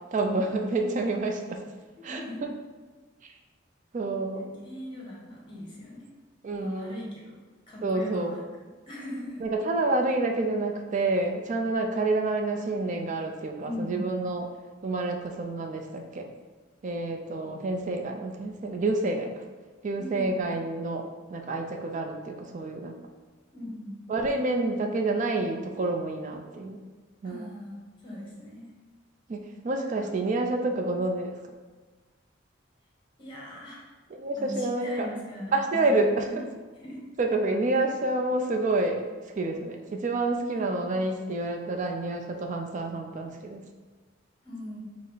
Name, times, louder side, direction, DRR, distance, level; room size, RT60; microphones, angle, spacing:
voice 1, 0.1-1.6 2.0-2.2 3.9-4.5 6.4-6.9 7.8-8.4 9.4-14.5 14.8-16.3 16.8-19.3 19.8-21.0 21.3-22.9 24.1-26.8 27.2-27.4 29.3-31.3 34.1-35.1 35.5-36.4 37.2-39.0 39.4-43.6, right 2 dB, 40° right, 3 dB, 0.4 m, -28 dB
voice 2, 2.0-2.5 4.3-6.1 6.6-8.4 8.9-9.4 13.6-14.1 20.0-20.4 23.5-24.0 27.2-28.7 29.9-30.1 33.2-33.9 34.4-36.4 36.7-37.0 40.5-40.7 44.4-44.8, left 1 dB, 25° left, -4 dB, 1.1 m, -39 dB
5.2 x 2.0 x 3.9 m, 1.3 s
head